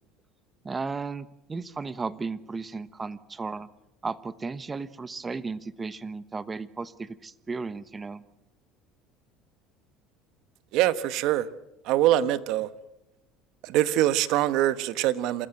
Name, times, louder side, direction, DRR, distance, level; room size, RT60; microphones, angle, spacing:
voice 1, 0.6-3.7 4.0-8.2, right 4 dB, 20° right, 1.1 m, -35 dB
voice 2, 10.7-11.5 11.8-12.7 13.6-15.5, right 13 dB, 65° right, 1.1 m, -24 dB
28.0 x 14.0 x 7.9 m
supercardioid pair, 105°, 0 cm